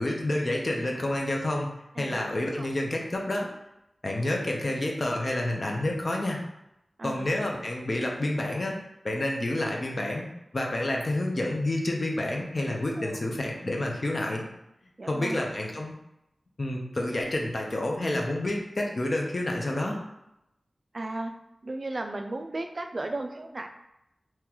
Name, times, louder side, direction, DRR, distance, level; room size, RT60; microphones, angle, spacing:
voice 1, 0.0-1.7 2.0-3.5 4.0-6.4 7.0-8.8 9.0-10.3 10.5-14.4 15.1-15.9 16.6-20.0, left 1 dB, 45° left, 0 dB, 0.7 m, -29 dB
voice 2, 2.0-2.3 2.6-2.7 7.0-7.3 13.0-13.2 15.0-15.4 20.9-21.3 21.6-23.7, right 2 dB, 45° right, 5 dB, 0.3 m, -35 dB
3.7 x 3.0 x 3.0 m, 0.86 s
wide cardioid pair, 90°, 0 cm